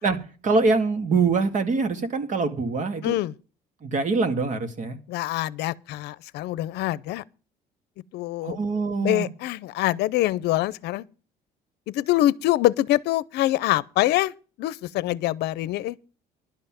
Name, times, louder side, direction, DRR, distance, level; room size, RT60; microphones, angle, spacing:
voice 1, 0.0-3.2 3.8-5.0 8.4-9.3, right 4 dB, 45° right, 2.1 m, -24 dB
voice 2, 3.0-3.3 5.1-7.2 8.1-8.6 9.0-11.1 11.9-14.3 14.6-16.0, left 15 dB, 80° left, 0.6 m, -24 dB
11.5 x 5.6 x 9.0 m
cardioid pair, 110°, 17 cm